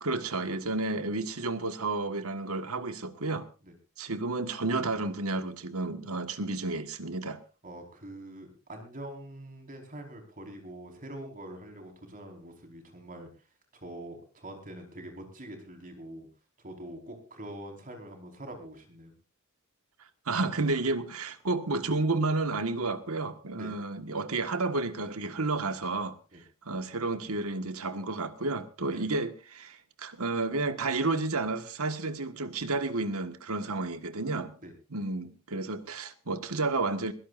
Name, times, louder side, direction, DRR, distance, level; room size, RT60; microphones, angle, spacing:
voice 1, 0.0-3.5 4.0-7.4 20.3-26.1 26.6-34.5 34.9-37.1, right 3 dB, 80° right, 1.6 m, -31 dB
voice 2, 7.6-13.3 13.7-16.3 16.6-19.1 23.5-23.7 26.3-26.4 28.9-29.0 34.6-34.7, right 1 dB, 40° right, 4.7 m, -44 dB
22.0 x 17.0 x 2.6 m
head